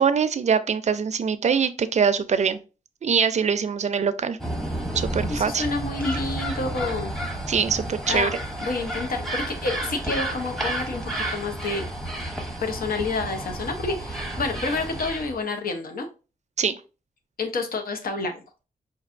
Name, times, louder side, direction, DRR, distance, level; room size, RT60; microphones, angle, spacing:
voice 1, 0.0-2.6 3.0-4.4 4.9-5.6 7.5-8.3 16.6-16.8, right 6 dB, 50° right, 0.4 m, -23 dB
sound 1, 4.4-15.4, right 1 dB, ahead, 0.8 m, -31 dB
voice 2, 5.3-7.1 8.1-8.3 8.6-11.9 12.6-16.1 17.4-18.4, left 3 dB, 70° left, 0.7 m, -29 dB
5.2 x 2.6 x 2.5 m
wide cardioid pair, 105°, 15 cm